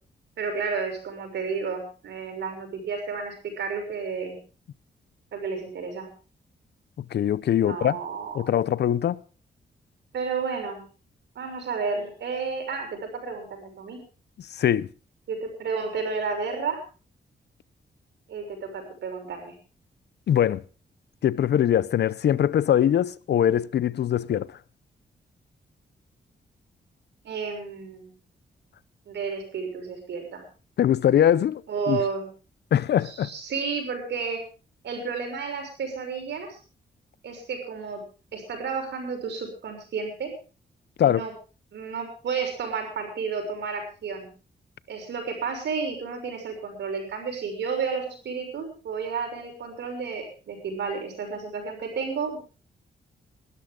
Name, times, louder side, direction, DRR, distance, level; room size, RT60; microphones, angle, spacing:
voice 1, 0.4-4.4 5.3-6.1 7.6-8.5 10.1-10.8 11.3-14.0 15.3-16.8 18.3-19.5 27.2-28.1 29.1-30.4 31.7-32.3 33.0-34.4 34.8-36.6 37.2-38.0 38.3-40.3 41.0-41.3 41.7-44.3 44.9-52.4, right 5 dB, 85° right, 6.2 m, -31 dB
voice 2, 7.1-8.0 8.3-9.2 14.6-14.9 20.3-20.6 21.2-24.6 30.8-31.6 31.9-32.0 32.7-33.3 41.0-41.2, left 10 dB, 75° left, 0.6 m, -22 dB
20.5 x 13.0 x 3.8 m
cardioid pair, 105°, 18 cm